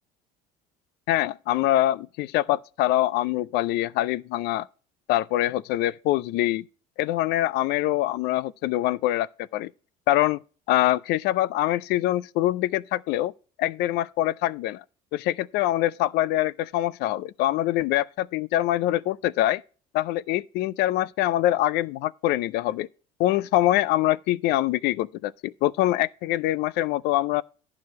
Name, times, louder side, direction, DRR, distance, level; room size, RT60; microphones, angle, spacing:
voice 1, 1.1-4.7 5.1-6.6 7.0-9.7 10.1-10.4 10.7-13.3 13.6-14.8 15.1-19.6 19.9-22.9 23.2-27.4, left 15 dB, 65° left, 0.4 m, -24 dB
10.5 x 4.9 x 5.3 m
supercardioid pair, 85°, 18 cm